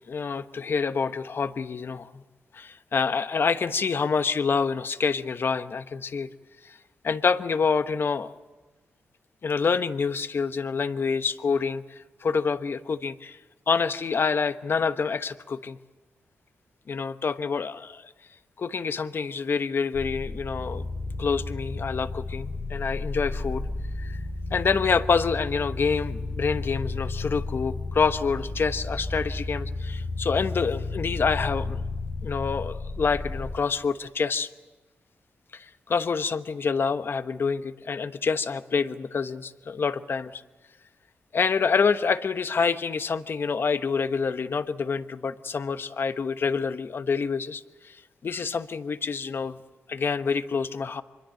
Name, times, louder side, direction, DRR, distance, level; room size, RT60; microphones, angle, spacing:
voice 1, 0.1-2.2 2.5-6.3 6.6-6.8 7.0-8.3 9.4-13.4 13.7-15.8 16.9-18.1 18.6-20.9 21.2-23.7 24.0-24.2 24.5-31.8 32.2-34.5 35.5-40.4 41.3-48.0 48.2-49.6 49.9-51.0, left 5 dB, 55° left, 11 dB, 1.1 m, -27 dB
sound 1, 19.9-33.6, left 3 dB, 80° left, 4.6 m, -33 dB
25.0 x 22.0 x 7.8 m, 1.2 s
cardioid pair, 65°, 4 cm